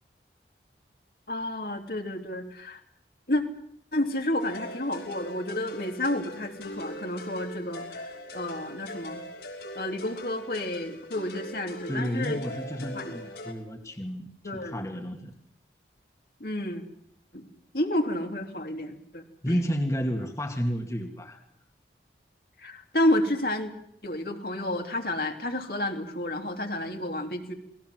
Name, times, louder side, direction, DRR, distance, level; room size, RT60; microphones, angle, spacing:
voice 1, 1.3-2.8 3.3-3.4 3.9-9.2 9.7-12.4 12.9-13.1 14.4-14.8 16.4-16.8 17.3-17.5 17.7-19.5 22.6-23.7 24.0-27.5, left 1 dB, 55° left, 4 dB, 3.2 m, -30 dB
sound 1, 4.4-13.5, left 1 dB, 75° left, 6.1 m, -41 dB
voice 2, 11.9-14.3 14.6-15.3 19.4-21.4, equal, 20° left, 4 dB, 2.3 m, -31 dB
29.0 x 21.0 x 7.8 m, 0.71 s
head